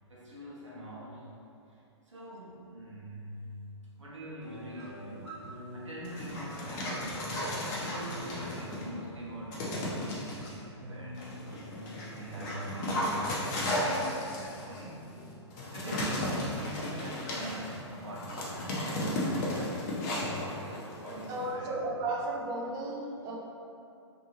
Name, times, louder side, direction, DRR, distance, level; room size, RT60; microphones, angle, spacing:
voice 1, 0.1-1.3 1.7-3.5 4.0-15.0 15.7-20.0 21.0-21.8, right 2 dB, 85° right, -6 dB, 0.8 m, -43 dB
sound 1, 4.4-13.4, equal, 65° right, 1.1 m, -46 dB
Dog, 6.0-8.9 9.5-10.5 11.2-21.5, left 1 dB, 40° left, 0.6 m, -35 dB
voice 2, 21.3-23.4, right 2 dB, 25° right, -2 dB, 0.4 m, -34 dB
2.6 x 2.6 x 2.8 m, 2.6 s
figure-of-eight pair, 115°, 15 cm